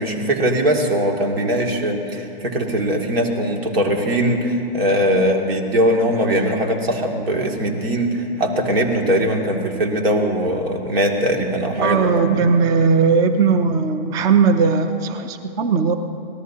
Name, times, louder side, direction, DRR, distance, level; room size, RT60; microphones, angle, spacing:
voice 1, 0.0-12.1 12.3-12.4, equal, 80° right, 2 dB, 2.5 m, -20 dB
voice 2, 11.8-15.9, right 5 dB, 15° right, 9 dB, 0.4 m, -18 dB
25.0 x 18.0 x 2.8 m, 2.7 s
hypercardioid pair, 140°, 30 cm